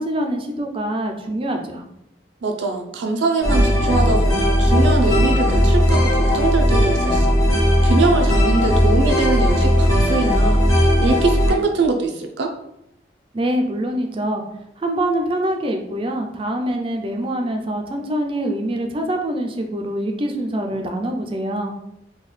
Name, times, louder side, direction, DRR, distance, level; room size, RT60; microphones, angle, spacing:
voice 1, 0.0-1.8 13.3-14.4 14.8-21.7, right 1 dB, 30° right, 4 dB, 0.4 m, -24 dB
voice 2, 2.4-12.5, right 3 dB, 85° right, 4 dB, 0.5 m, -23 dB
sound 1, 3.4-11.5, equal, 20° left, 0.7 m, -17 dB
3.8 x 2.3 x 3.2 m, 0.80 s
head